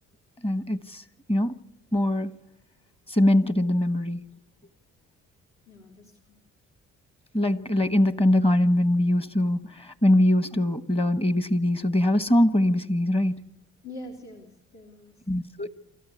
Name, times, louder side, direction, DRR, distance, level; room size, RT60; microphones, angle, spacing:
voice 1, 0.4-1.0 1.3-1.5 1.9-2.3 3.1-4.2 7.3-13.4 15.3-15.7, left 1 dB, 20° left, 1.2 m, -22 dB
voice 2, 5.7-6.4 13.8-15.1, left 1 dB, 70° left, 3.5 m, -44 dB
27.5 x 13.5 x 8.4 m
cardioid pair, 90°, 30 cm